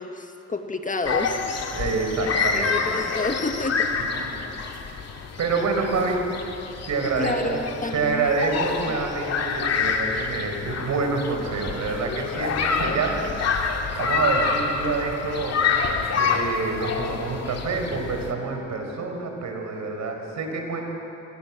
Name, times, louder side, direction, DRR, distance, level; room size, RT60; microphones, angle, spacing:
voice 1, 0.0-1.7 2.5-3.9 7.2-8.3 8.9-9.0, left 2 dB, 25° left, 5 dB, 1.9 m, -29 dB
sound 1, 1.0-18.3, left 5 dB, 55° left, 2.5 m, -27 dB
voice 2, 1.7-2.9 4.3-4.7 5.4-6.2 6.9-7.6 7.9-13.5 13.9-20.8, right 4 dB, 65° right, 3 dB, 5.2 m, -27 dB
28.0 x 21.0 x 7.5 m, 3.0 s
cardioid pair, 90°, 30 cm